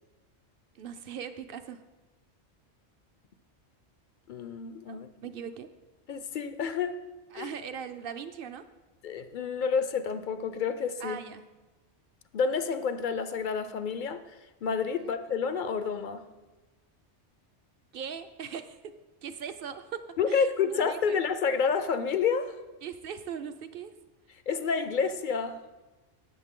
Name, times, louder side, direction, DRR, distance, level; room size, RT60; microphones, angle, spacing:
voice 1, 0.7-1.8 4.9-5.7 7.3-8.6 11.0-11.5 14.9-15.2 17.9-18.8 19.2-20.0 20.3-21.2 22.8-23.9, right 7 dB, 55° right, 0.8 m, -40 dB
voice 2, 4.3-5.1 6.1-7.0 7.3-7.5 9.0-11.2 12.3-14.2 14.6-16.3 20.2-22.6 24.5-25.6, left 6 dB, 55° left, 0.6 m, -29 dB
17.0 x 8.0 x 3.7 m
omnidirectional pair, 1.2 m